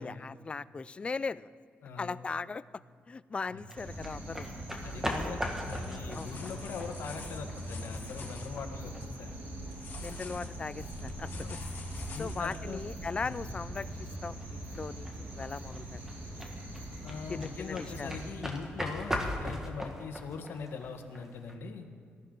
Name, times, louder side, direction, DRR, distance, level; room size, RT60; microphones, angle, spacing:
voice 1, 0.0-1.5 2.0-2.6 3.1-4.5 5.1-5.3 6.1-6.3 10.0-11.6 12.2-16.0 17.3-18.1, left 4 dB, 30° left, 17 dB, 0.3 m, -38 dB
voice 2, 1.8-2.2 3.5-3.6 4.8-5.4 5.7-9.4 11.3-11.6 12.1-12.8 13.2-13.4 17.0-21.9, left 5 dB, 75° left, 6 dB, 1.3 m, -41 dB
sound 1, 3.7-21.5, equal, 10° right, 1.8 m, -41 dB
sound 2, 3.7-18.3, right 1 dB, 65° right, 4.6 m, -42 dB
sound 3, 5.0-5.2 5.5-8.5 9.7-12.6 13.3-13.4, left 5 dB, 55° left, 2.3 m, -49 dB
19.0 x 13.5 x 3.9 m, 2.1 s
cardioid pair, 105°, 4 cm